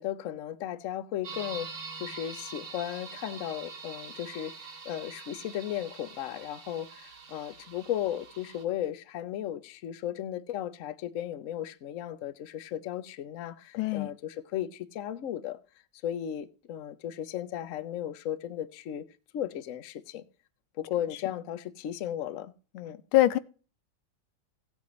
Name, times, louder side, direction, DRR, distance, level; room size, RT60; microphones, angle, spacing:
voice 1, 0.0-15.6 16.0-19.0 19.3-20.2 20.8-23.0, left 11 dB, 65° left, 0.8 m, -35 dB
sound 1, 1.2-8.6, right 5 dB, 85° right, 2.5 m, -44 dB
voice 2, 13.7-14.1 23.1-23.4, left 15 dB, 85° left, 1.5 m, -23 dB
16.0 x 8.6 x 3.1 m
omnidirectional pair, 2.2 m